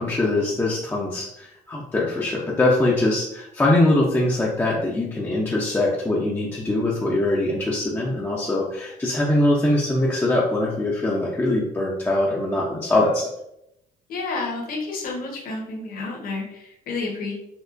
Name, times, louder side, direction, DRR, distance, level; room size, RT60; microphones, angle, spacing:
voice 1, 0.0-13.2, left 2 dB, 15° left, -4 dB, 0.5 m, -22 dB
voice 2, 14.1-17.3, left 3 dB, 60° left, -2 dB, 1.1 m, -30 dB
4.3 x 2.4 x 2.5 m, 0.81 s
cardioid pair, 110°, 17 cm